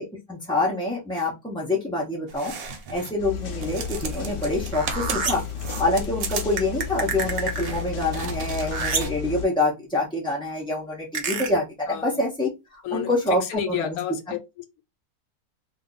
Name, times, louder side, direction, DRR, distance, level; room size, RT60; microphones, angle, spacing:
voice 1, 0.0-5.4 5.8-14.0, left 2 dB, 10° left, 0.3 m, -26 dB
sound 1, 2.3-3.2 3.5-9.1, right 5 dB, 75° right, 1.1 m, -36 dB
sound 2, 3.2-9.5, left 7 dB, 60° left, 0.6 m, -33 dB
sound 3, 4.7-5.5 6.6-7.9 8.6-9.2 11.1-11.5 13.5-13.6, right 4 dB, 55° right, 0.5 m, -29 dB
voice 2, 11.9-12.3 12.8-14.6, left 9 dB, 80° left, 1.1 m, -31 dB
2.6 x 2.3 x 3.7 m
omnidirectional pair, 1.6 m